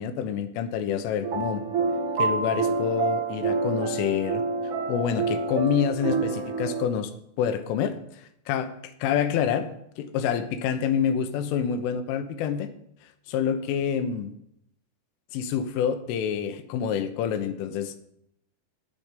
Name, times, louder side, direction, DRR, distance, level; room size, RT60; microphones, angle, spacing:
voice 1, 0.0-1.6 2.2-4.4 4.9-7.1 7.4-9.7 10.0-12.7 13.3-14.3 15.3-18.0, left 8 dB, 80° left, 10 dB, 3.6 m, -27 dB
sound 1, 1.2-6.8, right 4 dB, 70° right, 1.1 m, -28 dB
14.0 x 6.0 x 10.0 m, 0.75 s
omnidirectional pair, 5.7 m